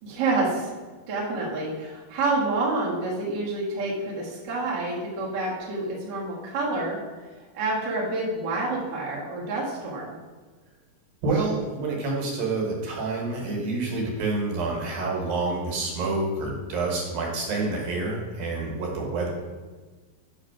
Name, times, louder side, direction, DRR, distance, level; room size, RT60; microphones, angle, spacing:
voice 1, 0.0-0.8 1.1-7.0 7.5-10.1, right 2 dB, 50° right, -4 dB, 1.3 m, -28 dB
voice 2, 11.2-19.3, right 3 dB, 80° right, -1 dB, 3.1 m, -28 dB
7.9 x 3.2 x 6.0 m, 1.4 s
omnidirectional pair, 4.1 m